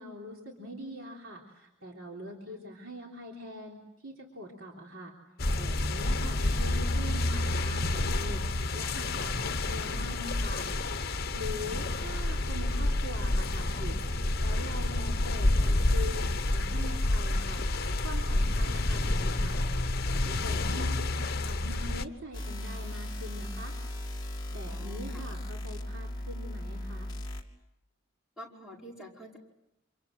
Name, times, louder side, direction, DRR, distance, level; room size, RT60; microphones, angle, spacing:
voice 1, 0.0-5.1 5.6-10.7 11.3-14.0 14.4-17.6 18.0-23.8 24.5-27.1, left 1 dB, 75° right, -1 dB, 3.6 m, -43 dB
sound 1, 5.4-22.1, left 2 dB, 50° left, 1.2 m, -29 dB
voice 2, 11.6-12.3 24.7-25.2 28.4-29.4, equal, 5° right, -3 dB, 5.2 m, -48 dB
sound 2, 22.3-27.4, left 1 dB, 20° left, 2.9 m, -37 dB
28.0 x 27.0 x 7.7 m, 0.89 s
head